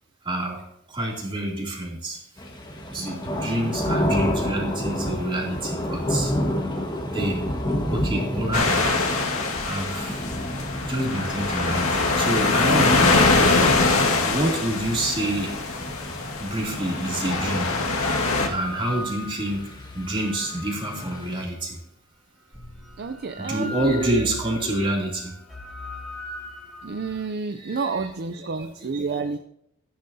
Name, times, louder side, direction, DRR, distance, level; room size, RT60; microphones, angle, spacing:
voice 1, 0.2-0.6 0.9-2.2 2.9-6.3 7.1-7.4 7.9-8.9 9.6-10.2 10.9-13.1 14.2-15.6 16.4-17.8 18.5-19.7 19.9-21.8 23.4-25.3 27.6-27.9 28.5-29.2, right 1 dB, 25° right, -2 dB, 2.8 m, -27 dB
sound 1, 2.4-21.5, equal, 20° left, 1.5 m, -31 dB
voice 2, 3.0-3.3 23.0-24.3 26.8-29.4, right 4 dB, 50° right, 8 dB, 0.5 m, -30 dB
sound 2, 8.5-18.5, left 3 dB, 80° left, 1.8 m, -23 dB
sound 3, 17.8-21.8 22.5-27.2, left 2 dB, ahead, 2.8 m, -39 dB
14.5 x 10.5 x 2.8 m, 0.76 s
head